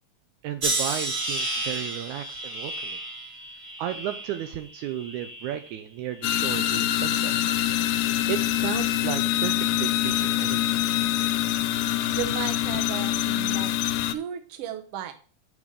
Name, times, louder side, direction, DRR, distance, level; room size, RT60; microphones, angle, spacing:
voice 1, 0.4-3.0 3.8-7.5 8.3-10.8, right 11 dB, 75° right, 8 dB, 2.0 m, -34 dB
sound 1, 0.6-5.8 6.2-6.9 7.6-7.9, right 2 dB, 35° right, 1.4 m, -33 dB
sound 2, 6.2-14.1, left 13 dB, 90° left, 2.2 m, -25 dB
voice 2, 12.1-13.7 14.1-15.1, right 10 dB, 60° right, 7 dB, 1.8 m, -34 dB
7.0 x 5.1 x 6.7 m, 0.39 s
omnidirectional pair, 3.6 m